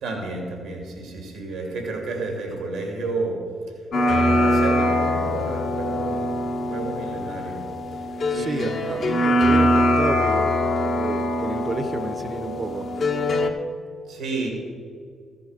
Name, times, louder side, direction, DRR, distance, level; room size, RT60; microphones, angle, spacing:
voice 1, 0.0-3.4 4.0-7.6 7.9-8.0 8.3-8.9 14.1-14.5, right 3 dB, 85° right, 2 dB, 2.5 m, -31 dB
sound 1, 3.9-13.5, left 1 dB, 60° left, 1.1 m, -23 dB
voice 2, 8.3-13.0, right 2 dB, 40° right, 11 dB, 0.9 m, -31 dB
14.0 x 7.8 x 5.2 m, 2.2 s
hypercardioid pair, 45°, 0 cm